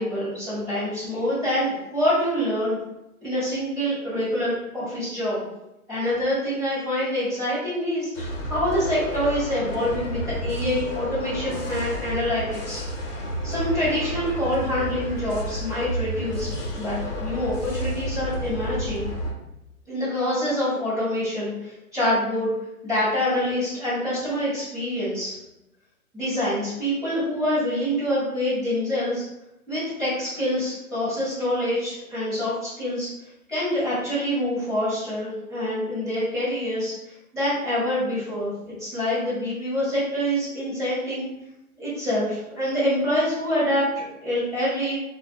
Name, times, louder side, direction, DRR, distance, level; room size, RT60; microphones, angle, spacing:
voice 1, 0.0-2.8 3.2-5.4 5.9-12.8 13.4-16.5 16.8-19.0 19.9-22.5 22.8-25.3 26.1-29.2 29.7-33.1 33.5-41.3 41.8-45.0, equal, ahead, -18 dB, 0.5 m, -26 dB
sound 1, 8.1-19.3, equal, 55° left, 0.8 m, -31 dB
3.1 x 2.2 x 2.8 m, 0.91 s
hypercardioid pair, 145°, 44 cm